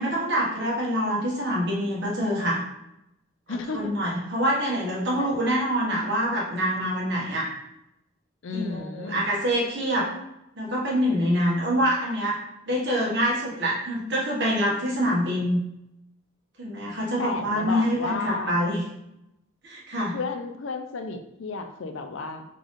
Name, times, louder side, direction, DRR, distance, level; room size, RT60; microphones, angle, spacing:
voice 1, 0.0-2.6 3.5-7.5 8.5-10.1 10.6-12.4 12.7-15.6 16.6-18.8 19.6-20.2, equal, 55° right, -5 dB, 1.4 m, -25 dB
voice 2, 3.5-3.9 5.2-5.3 8.4-9.2 17.2-18.5 20.1-22.5, left 4 dB, 65° left, 6 dB, 0.5 m, -32 dB
3.8 x 3.6 x 3.6 m, 0.88 s
head